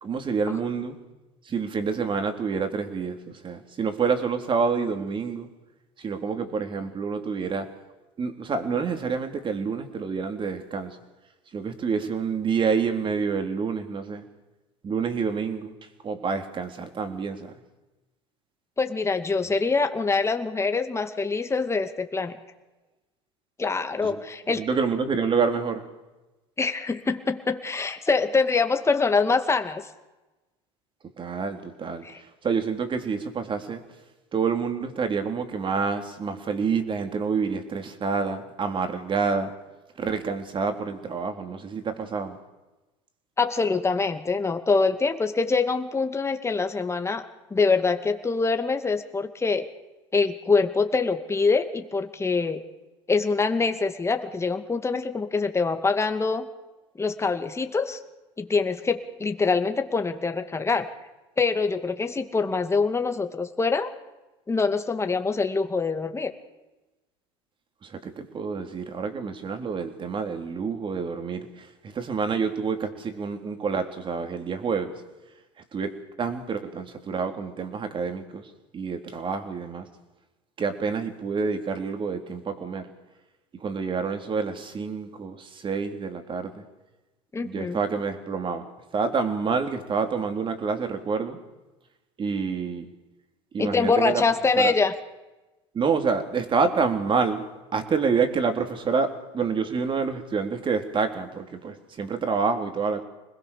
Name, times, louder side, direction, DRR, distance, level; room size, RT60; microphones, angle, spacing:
voice 1, 0.0-1.0 1.5-5.5 6.0-7.7 8.2-11.0 11.5-14.2 14.8-15.7 16.0-17.5 24.0-24.2 24.6-25.9 31.2-33.8 34.3-39.5 40.0-42.4 67.8-74.9 75.7-79.9 80.6-82.9 83.5-86.7 87.4-88.7 88.9-91.4 92.2-92.9 93.5-94.2 94.6-94.7 95.7-97.5 97.7-103.0, right 5 dB, 35° right, 7 dB, 3.6 m, -28 dB
voice 2, 18.8-22.4 23.6-24.6 26.6-29.8 32.0-32.2 43.4-49.7 50.1-52.6 53.1-56.5 57.0-58.0 58.4-60.9 61.4-63.9 64.5-66.3 87.3-87.8 93.6-94.9, left 4 dB, 20° left, 7 dB, 2.4 m, -24 dB
26.5 x 20.5 x 6.9 m, 1.1 s
hypercardioid pair, 85°, 15 cm